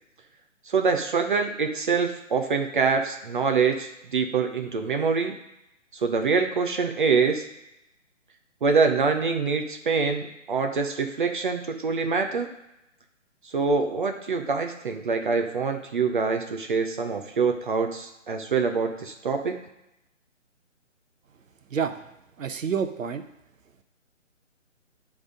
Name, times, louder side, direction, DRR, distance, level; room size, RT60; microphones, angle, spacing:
voice 1, 0.7-5.3 5.9-7.4 8.6-12.5 13.4-19.6, right 5 dB, 40° right, 5 dB, 0.7 m, -25 dB
voice 2, 21.7-22.1 22.4-23.2, right 6 dB, 80° right, 9 dB, 0.9 m, -28 dB
9.2 x 3.6 x 5.0 m, 0.87 s
hypercardioid pair, 150°, 39 cm